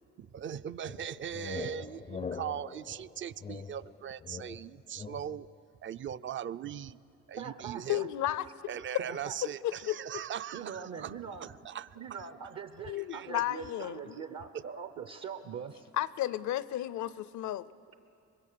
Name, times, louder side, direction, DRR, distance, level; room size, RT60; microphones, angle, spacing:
voice 1, 0.2-5.5 5.8-7.0 7.3-8.1 8.7-12.0 13.1-13.3 14.1-14.3, right 9 dB, 40° right, 16 dB, 0.5 m, -40 dB
sound 1, 0.9-5.5, left 5 dB, 25° left, 0.4 m, -43 dB
voice 2, 7.4-8.1 9.0-9.3 10.5-11.5 12.0-15.9, right 6 dB, 60° right, 9 dB, 0.8 m, -42 dB
voice 3, 7.9-8.5 9.6-10.2 12.8-14.2 15.9-17.7, left 13 dB, 75° left, 17 dB, 0.6 m, -33 dB
24.5 x 21.5 x 6.8 m, 2.7 s
cardioid pair, 90°, 30 cm